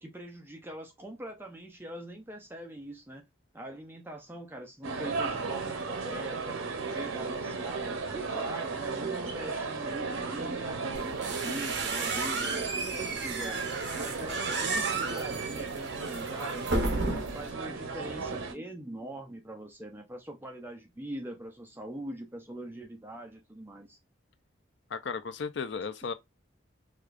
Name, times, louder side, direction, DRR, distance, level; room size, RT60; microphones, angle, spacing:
voice 1, 0.0-3.2 3.5-6.6 6.9-13.6 13.9-17.0 17.3-24.0, right 1 dB, 10° right, 0.5 m, -42 dB
sound 1, 4.8-18.5, right 4 dB, 85° right, 0.7 m, -35 dB
sound 2, 10.9-17.5, right 3 dB, 60° right, 0.9 m, -33 dB
voice 2, 24.9-26.1, left 5 dB, 60° left, 0.4 m, -35 dB
4.8 x 2.3 x 2.4 m
head